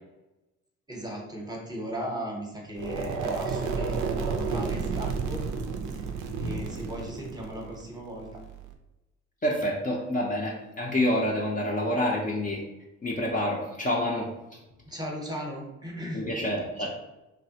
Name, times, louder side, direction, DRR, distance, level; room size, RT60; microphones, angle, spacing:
voice 1, 0.9-5.4 5.9-6.1 6.4-8.3 14.8-16.3 16.8-16.9, equal, 15° right, -1 dB, 0.8 m, -37 dB
sound 1, 2.8-8.7, right 4 dB, 80° right, 0.5 m, -31 dB
voice 2, 9.4-12.6 13.0-14.3 16.1-16.9, left 1 dB, 25° left, -2 dB, 0.5 m, -27 dB
3.2 x 2.1 x 2.7 m, 1.0 s
cardioid pair, 90°, 30 cm